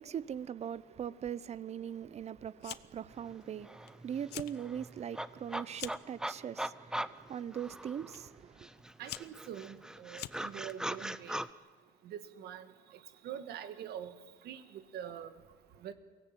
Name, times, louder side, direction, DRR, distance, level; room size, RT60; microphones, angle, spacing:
voice 1, 0.0-8.7, right 9 dB, 40° right, 0.6 m, -41 dB
Fire, 2.6-3.1 3.4-3.9 4.2-4.6 5.0-6.1 6.9-7.3 8.1-8.2 8.8-10.7, left 16 dB, 80° left, 0.7 m, -45 dB
sound 1, 3.3-3.4 3.6-8.3 8.6-11.5, right 1 dB, 5° right, 0.6 m, -41 dB
voice 2, 9.0-11.4 12.0-12.7 13.2-14.1 14.4-15.3 15.8-15.9, right 9 dB, 70° right, 1.6 m, -44 dB
23.0 x 17.0 x 8.9 m
cardioid pair, 110°, 17 cm